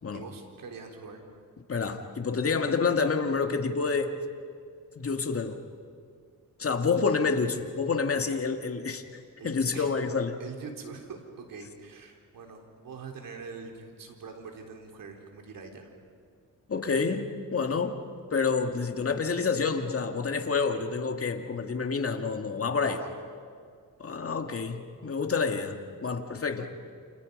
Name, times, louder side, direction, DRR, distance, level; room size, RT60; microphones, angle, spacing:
voice 1, 0.1-1.2 7.0-7.1 9.4-9.9 10.4-15.9 22.8-23.1, right 5 dB, 70° right, 2 dB, 3.9 m, -43 dB
voice 2, 1.7-4.2 5.0-5.6 6.6-9.0 9.4-10.4 16.7-18.1 18.3-23.0 24.0-26.7, left 5 dB, 40° left, 5 dB, 2.3 m, -28 dB
29.0 x 28.5 x 5.5 m, 2.2 s
cardioid pair, 75°, 34 cm